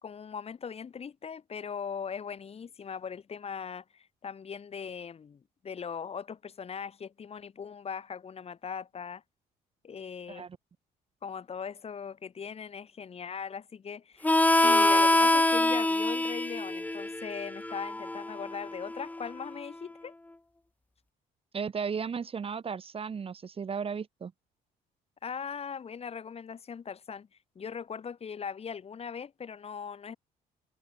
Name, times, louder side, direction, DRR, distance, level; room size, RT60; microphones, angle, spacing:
voice 1, 0.0-9.2 9.8-10.5 11.2-14.3 14.6-20.1 25.2-27.3 27.6-30.2, left 6 dB, 35° left, 3.9 m, -40 dB
Harmonica, 14.2-19.5, left 2 dB, 10° left, 2.2 m, -25 dB
voice 2, 21.5-24.3, right 6 dB, 35° right, 2.5 m, -35 dB
cardioid pair, 110°, 17 cm